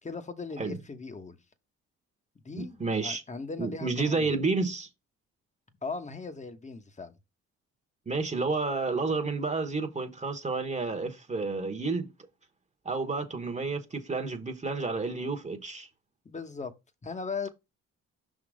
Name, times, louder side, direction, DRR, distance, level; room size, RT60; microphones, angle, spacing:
voice 1, 0.0-1.4 2.4-4.4 5.8-7.1 16.2-16.7 17.0-17.5, left 4 dB, 25° left, 1.2 m, -38 dB
voice 2, 2.5-3.2 3.6-4.9 8.1-12.1 12.8-15.9, right 3 dB, 25° right, 1.2 m, -30 dB
5.8 x 3.7 x 4.9 m
cardioid pair, 90°, 30 cm